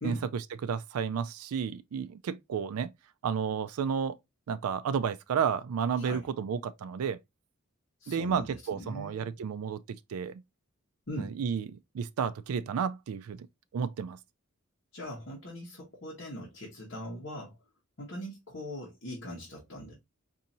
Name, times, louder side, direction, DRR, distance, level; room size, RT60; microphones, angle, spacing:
voice 1, 0.0-2.9 3.2-4.2 4.5-7.2 8.1-10.4 11.2-11.7 11.9-13.5 13.7-14.2, right 7 dB, 85° right, 0.3 m, -32 dB
voice 2, 8.0-9.3 11.1-11.3 14.9-17.5 18.0-20.0, equal, 55° left, 1.1 m, -40 dB
4.1 x 2.7 x 2.5 m
head